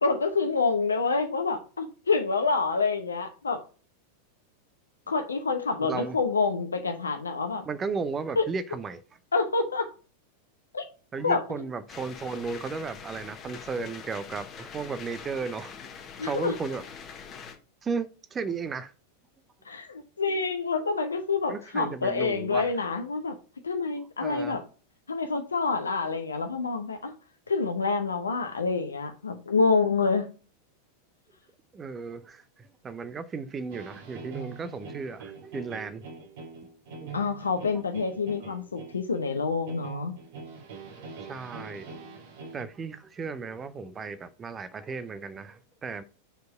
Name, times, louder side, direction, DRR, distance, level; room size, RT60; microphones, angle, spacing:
voice 1, 0.0-3.6 5.1-7.6 8.4-8.5 9.3-9.9 10.7-10.8 11.2-11.4 16.2-16.5 19.7-23.4 23.6-24.6 25.1-27.1 27.5-30.3 37.1-40.1, left 4 dB, 75° left, 0.8 m, -27 dB
voice 2, 5.9-6.2 7.7-9.0 11.1-15.8 16.2-16.8 17.8-18.9 21.5-22.7 24.2-24.6 31.7-36.1 37.0-37.1 41.2-41.9 42.5-46.0, right 5 dB, 20° right, 0.6 m, -35 dB
sound 1, 11.9-17.6, left 6 dB, 30° left, 1.2 m, -44 dB
sound 2, 33.7-42.6, right 5 dB, 55° right, 1.4 m, -43 dB
4.7 x 4.5 x 5.3 m
figure-of-eight pair, 90°, 0 cm